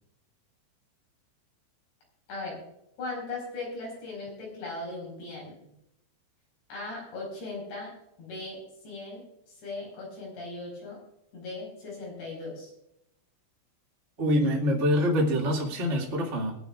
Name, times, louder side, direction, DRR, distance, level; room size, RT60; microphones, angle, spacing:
voice 1, 2.3-2.6 3.0-5.6 6.7-7.9 8.2-9.2 9.6-11.0 11.3-12.7, left 2 dB, 60° left, -2 dB, 7.3 m, -38 dB
voice 2, 14.2-16.5, equal, 45° right, -3 dB, 0.9 m, -25 dB
22.5 x 10.5 x 2.5 m, 0.80 s
omnidirectional pair, 6.0 m